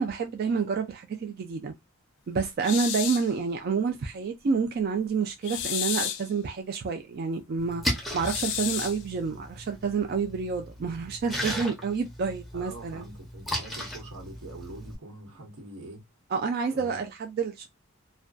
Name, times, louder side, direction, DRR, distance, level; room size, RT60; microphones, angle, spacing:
voice 1, 0.0-1.7 2.3-7.8 8.1-13.0 16.3-17.7, right 5 dB, 45° right, 0.3 m, -29 dB
sound 1, 2.6-3.3 5.4-6.3 8.2-9.0, left 10 dB, 55° left, 0.3 m, -31 dB
Splash splatter, 7.6-15.0, equal, ahead, 0.6 m, -36 dB
voice 2, 12.5-16.0 16.7-17.0, right 2 dB, 90° right, 1.1 m, -44 dB
2.4 x 2.2 x 2.3 m
head